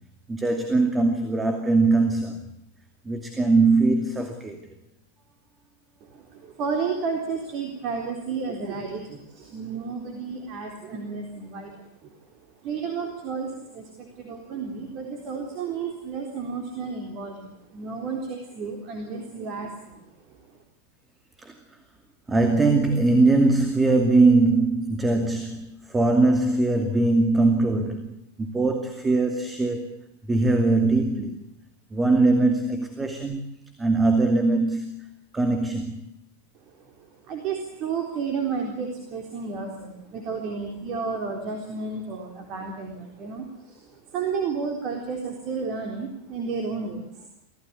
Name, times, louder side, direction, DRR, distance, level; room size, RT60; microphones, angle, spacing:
voice 1, 0.3-2.4 3.0-4.7 21.4-21.8 22.3-30.0 30.3-31.4 31.9-33.5 33.8-35.1 35.3-36.0, right 3 dB, 10° right, 2.5 m, -21 dB
voice 2, 6.0-12.2 12.6-20.5 36.7-47.3, right 5 dB, 35° right, 3.9 m, -32 dB
25.0 x 16.5 x 8.5 m
figure-of-eight pair, 90°, 0 cm